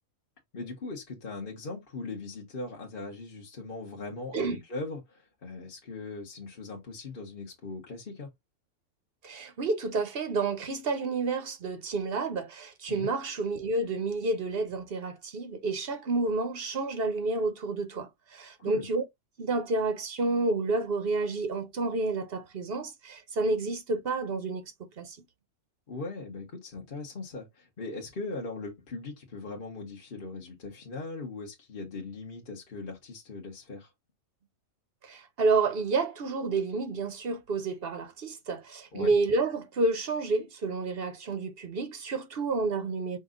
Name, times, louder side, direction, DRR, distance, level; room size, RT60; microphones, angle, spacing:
voice 1, 0.5-8.3 12.9-13.1 18.6-18.9 25.9-33.9 38.9-39.1, left 3 dB, 40° left, 1.3 m, -39 dB
voice 2, 9.2-19.0 19.4-24.6 25.0-25.2 35.0-43.2, right 3 dB, 45° right, 0.9 m, -30 dB
5.3 x 2.6 x 3.8 m
omnidirectional pair, 1.6 m